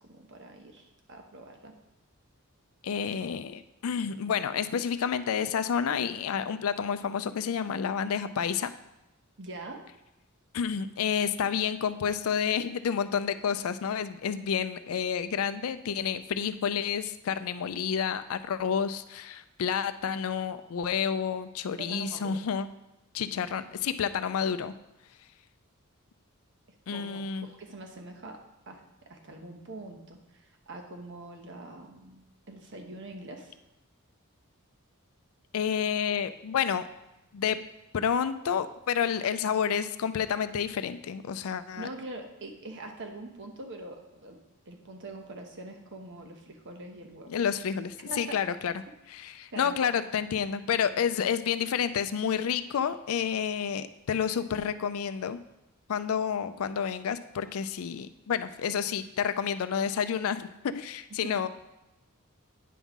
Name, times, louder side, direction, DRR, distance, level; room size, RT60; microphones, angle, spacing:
voice 1, 0.0-1.7 9.4-9.8 21.8-22.4 26.9-33.6 41.8-44.4 44.7-47.3 48.1-48.4 49.5-49.8 61.2-61.4, right 2 dB, 55° right, 4 dB, 1.0 m, -44 dB
voice 2, 2.8-8.7 10.5-22.7 23.1-24.7 26.9-27.5 35.5-36.9 37.3-37.6 37.9-41.9 47.3-48.7 49.1-55.4 55.9-61.5, left 7 dB, 70° left, 12 dB, 0.4 m, -29 dB
9.3 x 5.5 x 3.6 m, 0.93 s
head